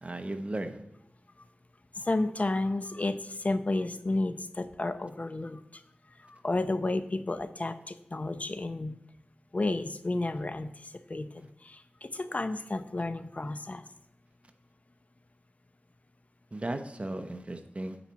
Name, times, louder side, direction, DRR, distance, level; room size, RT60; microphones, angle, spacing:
voice 1, 0.0-0.8 16.5-18.0, right 1 dB, 35° right, 7 dB, 1.0 m, -36 dB
voice 2, 1.9-5.6 6.2-9.0 9.5-13.8, left 2 dB, 45° left, 11 dB, 0.7 m, -32 dB
9.2 x 4.4 x 6.2 m, 0.75 s
cardioid pair, 45°, 3 cm